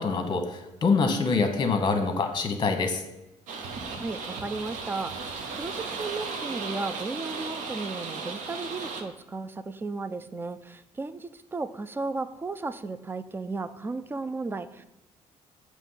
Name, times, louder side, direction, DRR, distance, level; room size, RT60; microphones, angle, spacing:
voice 1, 0.0-3.0, left 4 dB, 35° left, 6 dB, 1.0 m, -25 dB
sound 1, 3.5-9.0, right 4 dB, 85° right, 0.8 m, -36 dB
voice 2, 3.9-14.9, right 3 dB, 15° right, 13 dB, 0.3 m, -35 dB
7.6 x 3.0 x 5.5 m, 0.94 s
cardioid pair, 105°, 13 cm